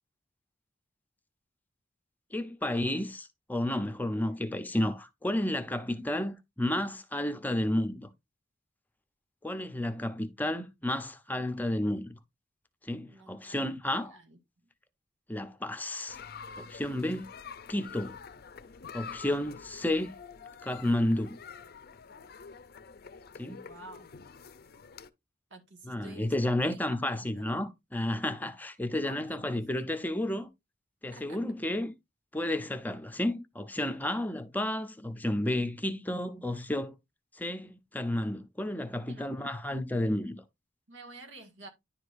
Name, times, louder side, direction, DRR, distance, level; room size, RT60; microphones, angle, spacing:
voice 1, 2.3-8.1 9.4-12.2 12.8-14.2 15.3-16.2 16.6-17.3 17.7-18.2 18.9-20.2 20.6-21.4 23.4-23.6 25.8-30.5 31.0-31.9 32.3-36.9 37.3-40.4, left 1 dB, 10° left, 0.6 m, -31 dB
voice 2, 13.0-13.8 14.0-14.4 23.6-24.1 25.5-26.3 26.6-27.5 29.0-29.9 31.1-31.4 39.1-39.3 40.9-41.7, right 2 dB, 85° right, 1.9 m, -50 dB
sound 1, 16.1-25.1, left 6 dB, 55° left, 0.5 m, -47 dB
10.5 x 4.8 x 2.6 m
head